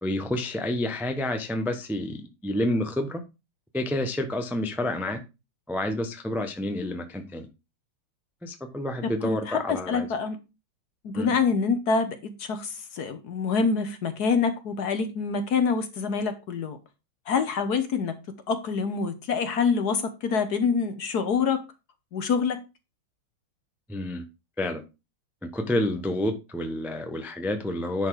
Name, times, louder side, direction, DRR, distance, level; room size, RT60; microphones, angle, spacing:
voice 1, 0.0-3.2 3.7-5.2 5.7-7.5 8.4-10.1 11.1-11.3 23.9-24.2 24.6-24.8 25.4-28.1, left 1 dB, ahead, 0.4 m, -29 dB
voice 2, 9.2-10.4 11.0-16.8 17.3-18.2 18.5-21.6 22.1-22.6, left 5 dB, 55° left, 1.3 m, -26 dB
10.5 x 4.2 x 4.7 m
omnidirectional pair, 2.3 m